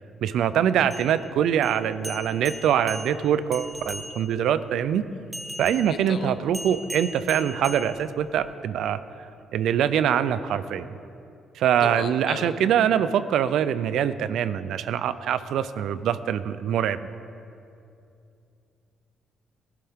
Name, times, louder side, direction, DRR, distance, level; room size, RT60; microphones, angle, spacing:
voice 1, 0.2-5.0 5.6-9.0 9.5-10.9 11.6-17.0, right 9 dB, 80° right, 13 dB, 0.5 m, -24 dB
sound 1, 0.8-4.5 5.3-8.5, equal, 5° right, 0.9 m, -40 dB
voice 2, 11.8-12.5, left 6 dB, 60° left, 7 dB, 1.0 m, -34 dB
19.0 x 11.5 x 3.7 m, 2.6 s
cardioid pair, 130°, 0 cm